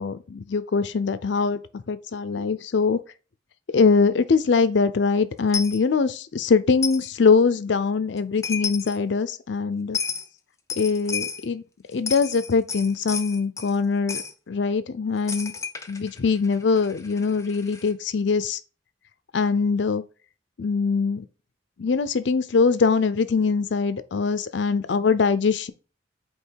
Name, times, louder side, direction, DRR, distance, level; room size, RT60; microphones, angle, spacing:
voice 1, 0.0-1.6 1.9-3.0 3.7-10.0 10.8-11.6 11.9-15.5 15.9-18.6 19.3-20.0 20.6-21.3 21.8-25.7, left 5 dB, 65° left, 0.5 m, -22 dB
Coin (dropping), 5.5-5.8 6.8-7.1 8.2-8.3 8.4-9.0 9.9-10.3 10.7-11.4 11.9-13.7 14.1-14.3 15.3-17.9, left 5 dB, 15° left, 0.6 m, -32 dB
8.2 x 2.9 x 4.6 m
head